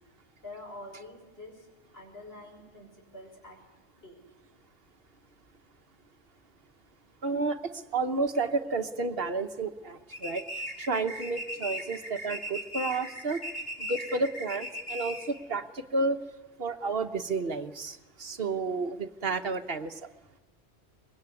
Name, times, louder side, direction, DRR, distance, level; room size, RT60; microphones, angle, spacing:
voice 1, 0.4-1.7 1.9-3.6 4.0-4.2, left 2 dB, 60° left, 1 dB, 6.6 m, -46 dB
voice 2, 7.2-7.6 7.9-10.4 10.8-13.4 13.8-16.2 16.6-20.1, right 3 dB, 60° right, 8 dB, 1.2 m, -31 dB
sound 1, 10.1-15.4, equal, 40° left, 8.2 m, -38 dB
24.5 x 21.5 x 9.6 m, 1.1 s
omnidirectional pair, 1.1 m